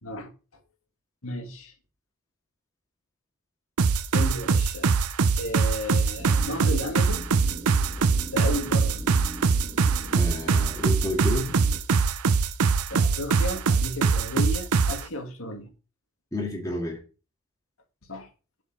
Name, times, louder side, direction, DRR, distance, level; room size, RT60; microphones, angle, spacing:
voice 1, 1.2-1.7 4.1-4.9 5.4-7.3 8.3-9.0 12.9-15.7 18.0-18.3, left 1 dB, 65° left, 2.2 m, -33 dB
sound 1, 3.8-15.0, right 5 dB, 85° right, 0.6 m, -23 dB
sound 2, 6.2-11.8, equal, 20° right, 1.7 m, -40 dB
voice 2, 10.1-11.6 16.3-17.0, left 1 dB, 15° left, 2.1 m, -30 dB
8.3 x 5.1 x 6.1 m
head